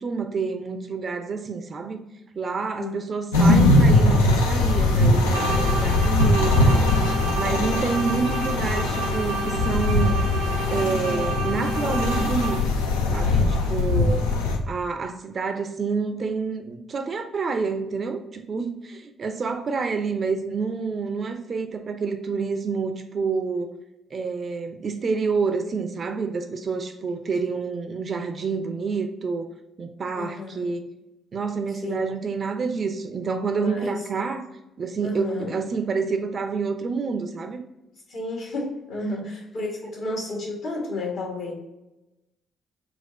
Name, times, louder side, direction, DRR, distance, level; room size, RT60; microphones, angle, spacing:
voice 1, 0.0-2.0 2.3-6.9 7.4-10.2 10.7-12.6 13.1-14.3 14.7-23.8 24.1-29.5 29.8-30.9 31.3-34.5 34.8-37.6 39.0-39.3, right 4 dB, 40° right, 7 dB, 0.4 m, -28 dB
sound 1, 3.3-14.6, left 2 dB, 75° left, 0.4 m, -21 dB
sound 2, 5.3-12.8, right 2 dB, 75° right, 0.7 m, -31 dB
voice 2, 6.6-7.4 27.4-27.6 30.1-30.7 31.8-32.0 33.6-34.0 35.0-35.6 38.1-41.5, left 2 dB, 60° left, -1 dB, 1.3 m, -32 dB
4.2 x 2.3 x 3.8 m, 0.95 s
figure-of-eight pair, 45°, 0 cm